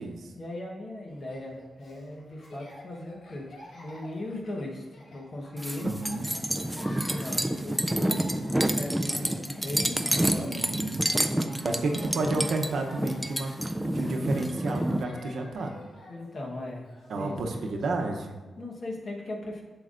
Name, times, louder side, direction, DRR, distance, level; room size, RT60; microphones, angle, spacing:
voice 1, 0.3-3.5 3.7-5.9 7.0-10.6 11.4-12.0 16.1-16.9 17.1-17.4 18.6-19.6, left 1 dB, 40° left, -1 dB, 1.1 m, -38 dB
Laughter, 1.1-17.9, left 1 dB, 75° left, 1.5 m, -49 dB
sound 1, 5.6-15.0, right 1 dB, 5° right, 0.3 m, -28 dB
voice 2, 5.8-6.3 10.5-11.0 11.6-13.5 13.8-15.7 17.1-18.4, right 2 dB, 75° right, 3 dB, 0.7 m, -31 dB
7.6 x 7.0 x 2.5 m, 1.2 s
wide cardioid pair, 165°, 0 cm